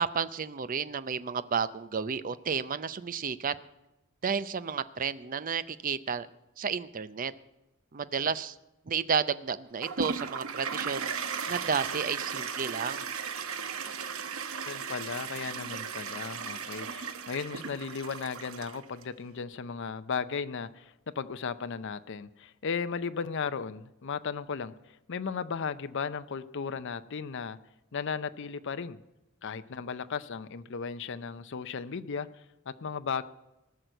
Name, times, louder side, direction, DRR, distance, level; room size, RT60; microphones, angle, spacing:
voice 1, 0.0-3.6 4.2-6.3 6.6-7.3 7.9-8.6 8.9-11.1 11.5-13.0, right 6 dB, 40° right, 15 dB, 0.5 m, -31 dB
Toilet flush, 9.8-19.0, right 6 dB, 85° right, 1.0 m, -36 dB
voice 2, 14.7-27.6 27.9-29.0 29.4-32.4 32.8-33.2, left 5 dB, 60° left, 12 dB, 0.6 m, -35 dB
18.5 x 6.3 x 8.0 m, 0.96 s
head